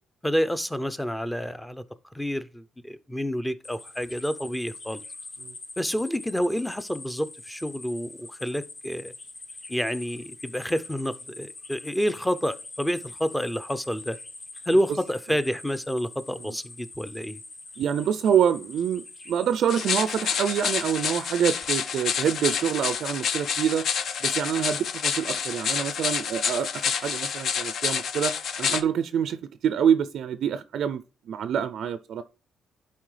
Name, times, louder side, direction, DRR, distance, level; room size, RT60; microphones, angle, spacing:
voice 1, 0.2-1.8 2.1-5.0 5.8-9.1 9.7-14.2 14.7-17.4, equal, 5° left, 0.5 m, -28 dB
sound 1, 3.6-21.6, left 2 dB, 45° left, 2.3 m, -44 dB
voice 2, 17.8-23.9 24.2-28.3 28.6-29.4 29.6-31.0 31.3-32.2, right 8 dB, 70° right, 0.4 m, -26 dB
sound 2, 19.7-28.8, left 7 dB, 65° left, 0.6 m, -28 dB
11.0 x 4.3 x 3.2 m
cardioid pair, 90°, 0 cm